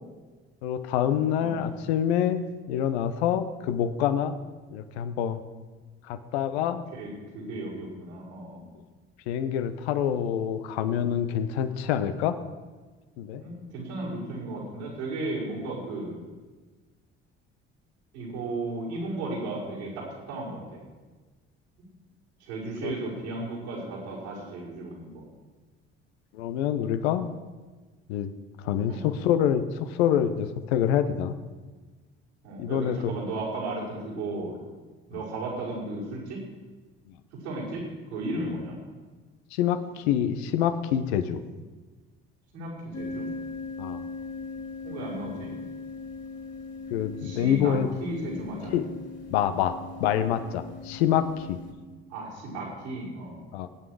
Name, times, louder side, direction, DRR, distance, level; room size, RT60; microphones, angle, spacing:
voice 1, 0.6-4.4 4.7-5.4 6.1-6.8 9.3-12.4 13.2-13.4 22.8-22.9 26.3-27.3 28.1-28.3 28.6-31.4 32.6-33.1 39.5-41.4 43.8-44.0 46.9-47.9 48.7-48.8 49.3-51.6 53.5-53.7, left 9 dB, 75° left, 11 dB, 1.0 m, -26 dB
voice 2, 6.9-8.7 13.4-16.1 18.1-20.8 22.4-25.2 28.9-29.1 32.4-34.6 35.1-36.4 37.4-37.8 38.1-38.8 42.5-43.3 44.8-45.5 47.2-48.7 52.1-53.4, right 2 dB, 85° right, -6 dB, 5.3 m, -35 dB
sound 1, 42.9-51.7, left 3 dB, 35° left, 2.8 m, -39 dB
22.0 x 9.3 x 4.9 m, 1.3 s
hypercardioid pair, 55°, 32 cm